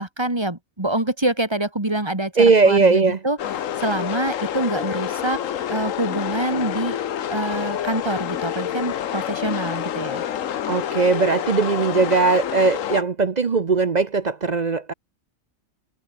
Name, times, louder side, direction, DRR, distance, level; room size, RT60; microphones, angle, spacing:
voice 1, 0.0-3.4 3.8-5.4 5.7-7.0 7.3-10.3, right 1 dB, 20° right, 2.5 m, -26 dB
voice 2, 2.4-3.2 10.7-14.9, right 4 dB, 40° right, 0.7 m, -19 dB
sound 1, 3.4-13.0, left 10 dB, 75° left, 1.3 m, -28 dB
omnidirectional pair, 1.4 m